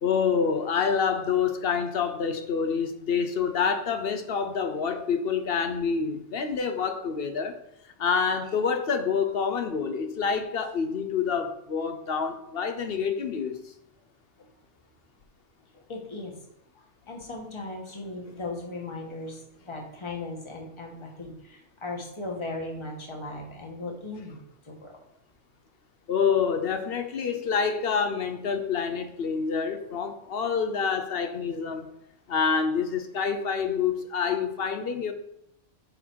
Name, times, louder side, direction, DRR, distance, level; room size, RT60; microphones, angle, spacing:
voice 1, 0.0-7.6 8.0-13.6 26.1-31.9 32.3-35.1, left 6 dB, 55° left, 8 dB, 0.9 m, -27 dB
voice 2, 15.9-16.3 17.1-19.4 19.7-24.4 24.7-25.0, left 2 dB, 25° left, 0 dB, 1.4 m, -37 dB
10.0 x 3.9 x 4.7 m, 0.78 s
omnidirectional pair, 1.3 m